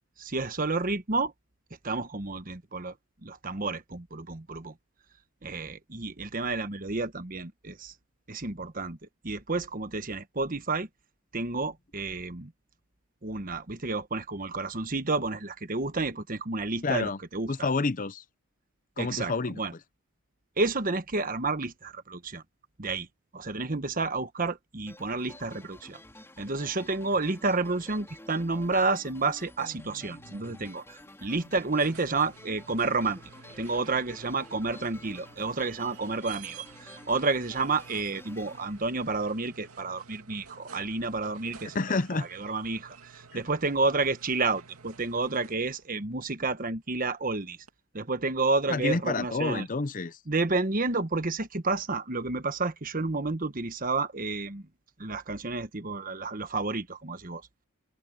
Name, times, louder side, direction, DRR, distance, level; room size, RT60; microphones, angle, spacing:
voice 1, 0.2-1.3 1.8-2.9 3.2-4.7 5.4-7.9 8.3-9.0 9.2-10.9 11.3-12.5 13.2-17.7 19.0-19.7 20.6-22.4 22.8-23.1 23.3-26.0 26.4-33.2 33.6-41.8 42.4-47.6 47.9-49.6 50.3-54.6 55.0-57.4, right 3 dB, 40° right, 1.2 m, -30 dB
voice 2, 16.8-17.2 17.5-18.2 19.0-19.6 41.7-42.3 43.3-43.4 48.7-50.2, left 3 dB, 40° left, 0.6 m, -29 dB
sound 1, 24.9-39.7, left 1 dB, 10° left, 3.8 m, -51 dB
sound 2, 29.6-30.7 31.0-32.0, left 2 dB, 90° left, 3.1 m, -53 dB
sound 3, 31.5-45.9 47.7-47.8, right 6 dB, 90° right, 2.5 m, -51 dB
open air
head